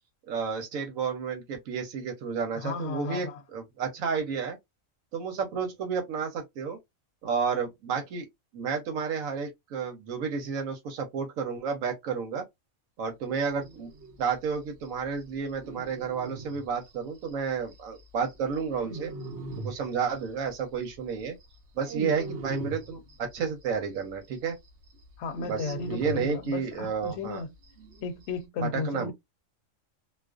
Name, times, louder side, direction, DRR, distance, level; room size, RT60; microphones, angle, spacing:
voice 1, 0.3-4.6 5.1-6.8 7.2-8.2 8.5-12.4 13.0-13.9 14.2-19.1 19.6-21.3 21.8-24.5 25.5-27.4 28.6-29.1, right 6 dB, 80° right, 1.0 m, -31 dB
voice 2, 2.6-3.4 25.2-27.5 28.0-29.1, left 4 dB, 65° left, 0.8 m, -34 dB
sound 1, 13.6-14.2 14.5-14.6 14.8-14.9 15.2-15.3 15.5-18.0 18.3-20.5 20.8-23.7 24.0-24.1 24.4-27.1 27.4-27.5 27.6-28.4, right 3 dB, 60° right, 0.9 m, -40 dB
2.4 x 2.3 x 2.3 m
omnidirectional pair, 1.4 m